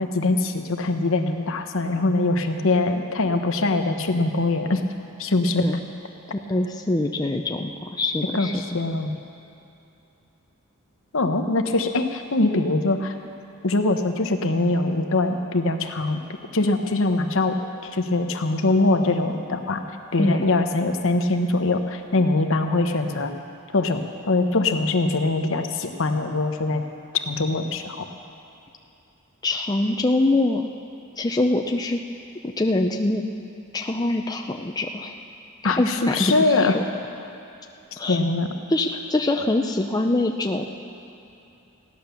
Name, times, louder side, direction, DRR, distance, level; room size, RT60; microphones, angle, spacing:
voice 1, 0.0-4.8 5.2-5.6 8.3-9.1 11.1-13.1 13.6-16.2 16.5-17.6 17.8-19.8 20.1-23.3 23.7-26.8 27.1-28.1 35.6-36.7 37.9-38.5, left 2 dB, 65° left, 6 dB, 1.0 m, -22 dB
voice 2, 6.3-8.5 20.2-20.5 29.4-30.7 31.2-32.0 32.4-33.2 33.7-35.1 35.6-36.8 38.0-38.2 38.7-40.6, left 2 dB, 20° left, 3 dB, 0.5 m, -24 dB
15.5 x 10.5 x 6.9 m, 2.8 s
head